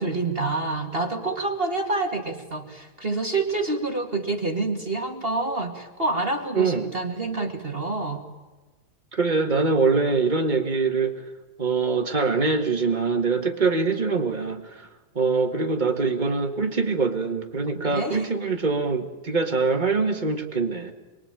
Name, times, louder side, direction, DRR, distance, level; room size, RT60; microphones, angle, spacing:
voice 1, 0.0-8.2 17.7-18.3, right 3 dB, 20° right, 2 dB, 1.6 m, -27 dB
voice 2, 6.5-6.9 9.1-11.1 11.6-14.9 15.1-20.9, right 4 dB, 60° right, 3 dB, 0.4 m, -23 dB
26.5 x 23.0 x 9.0 m, 1.2 s
omnidirectional pair, 4.0 m